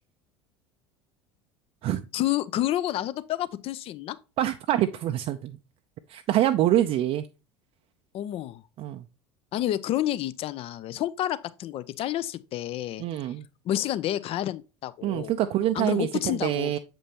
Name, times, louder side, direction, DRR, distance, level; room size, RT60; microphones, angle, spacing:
voice 1, 2.1-4.2 8.1-8.6 9.5-13.0 13.6-15.3 15.7-16.8, left 13 dB, 45° left, 0.6 m, -29 dB
voice 2, 4.4-5.6 6.1-7.3 8.8-9.0 13.0-13.4 15.0-16.8, right 12 dB, 45° right, 0.5 m, -25 dB
7.0 x 5.2 x 2.9 m
figure-of-eight pair, 70°, 14 cm